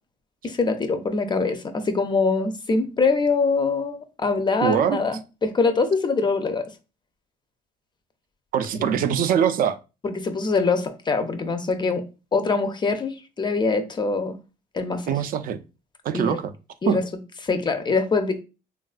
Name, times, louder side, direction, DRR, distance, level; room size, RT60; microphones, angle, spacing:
voice 1, 0.4-6.7 8.7-9.0 10.0-12.0 12.3-14.4 14.7-15.1 16.1-16.4 16.8-17.0 17.4-18.4, left 4 dB, 25° left, 0.4 m, -23 dB
voice 2, 4.6-5.0 8.5-9.8 15.1-15.6 16.0-16.5 16.9-17.0, right 8 dB, 55° right, 0.4 m, -22 dB
3.4 x 2.3 x 2.4 m
cardioid pair, 110°, 17 cm